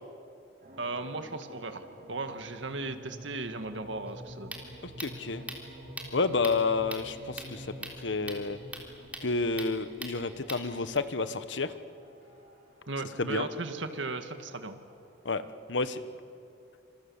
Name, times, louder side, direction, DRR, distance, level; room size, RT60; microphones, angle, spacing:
sound 1, 0.6-16.2, equal, 50° right, 5.7 m, -50 dB
voice 1, 0.8-4.6 12.9-14.8, right 2 dB, 85° right, 8 dB, 1.9 m, -36 dB
sound 2, 4.1-11.0, right 1 dB, 10° right, 3.5 m, -44 dB
voice 2, 5.0-5.4 6.1-7.7 8.0-8.6 9.2-11.7 13.2-13.5 15.2-15.4 15.7-16.0, left 3 dB, 75° left, 12 dB, 1.2 m, -30 dB
28.5 x 27.0 x 7.2 m, 2.5 s
head